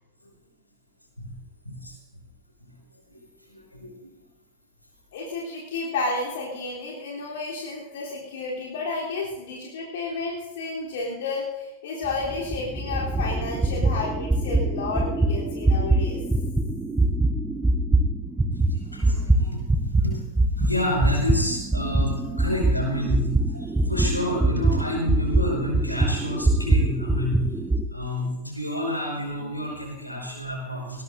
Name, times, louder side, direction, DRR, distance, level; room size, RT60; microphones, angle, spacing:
voice 1, 1.6-2.0 2.6-2.7 3.1-4.1 18.5-19.6 20.0-20.2 20.5-23.2 23.5-27.4 27.9-31.0, left 1 dB, 90° left, 0 dB, 5.7 m, -29 dB
voice 2, 5.1-16.2, left 3 dB, 55° left, -4 dB, 3.5 m, -31 dB
sound 1, 12.0-20.1 20.4-27.8, right 2 dB, 10° right, 1.1 m, -23 dB
22.0 x 18.0 x 2.7 m, 1.0 s
figure-of-eight pair, 90°, 0 cm